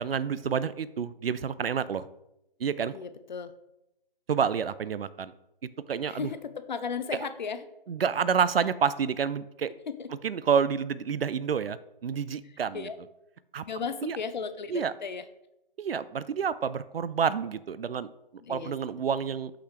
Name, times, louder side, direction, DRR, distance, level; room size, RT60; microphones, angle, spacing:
voice 1, 0.0-2.1 2.6-2.9 4.3-5.3 5.9-6.3 7.1-7.2 7.9-9.7 10.2-12.9 13.5-13.6 14.0-14.2 14.7-14.9 15.8-18.1 18.5-19.5, right 7 dB, 80° right, 16 dB, 0.5 m, -28 dB
voice 2, 2.9-3.5 6.1-7.6 10.0-10.1 12.7-12.9 13.7-15.2 18.4-18.7, left 6 dB, 50° left, 11 dB, 0.6 m, -35 dB
6.2 x 5.7 x 3.3 m, 0.87 s
figure-of-eight pair, 150°, 29 cm